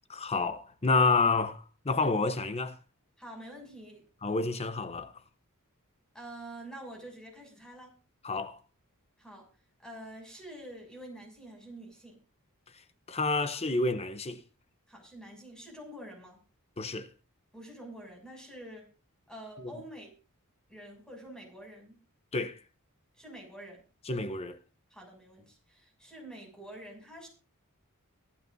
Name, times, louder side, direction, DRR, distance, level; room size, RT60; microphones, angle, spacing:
voice 1, 0.1-2.8 4.2-5.1 8.2-8.6 13.1-14.4 16.8-17.1 19.6-19.7 22.3-22.6 24.1-24.6, left 3 dB, 30° left, 0.8 m, -29 dB
voice 2, 3.2-4.0 6.1-7.9 9.2-9.5 9.8-12.2 14.9-16.4 17.5-18.9 19.3-20.1 20.7-22.0 23.2-23.8 24.9-27.3, right 1 dB, 5° left, 7.0 m, -47 dB
24.0 x 11.5 x 2.7 m
head